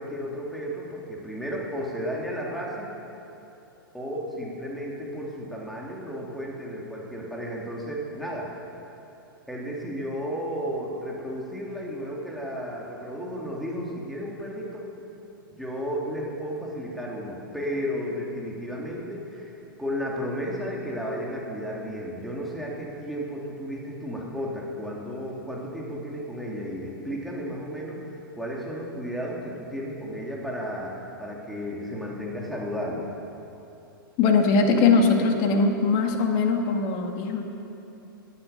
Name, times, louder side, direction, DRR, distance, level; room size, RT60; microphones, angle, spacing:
voice 1, 0.0-2.9 3.9-8.6 9.5-14.9 15.5-33.1, equal, ahead, -4 dB, 3.2 m, -33 dB
voice 2, 34.2-37.4, left 4 dB, 40° left, 3 dB, 2.1 m, -21 dB
17.0 x 10.0 x 6.8 m, 2.9 s
hypercardioid pair, 110°, 12 cm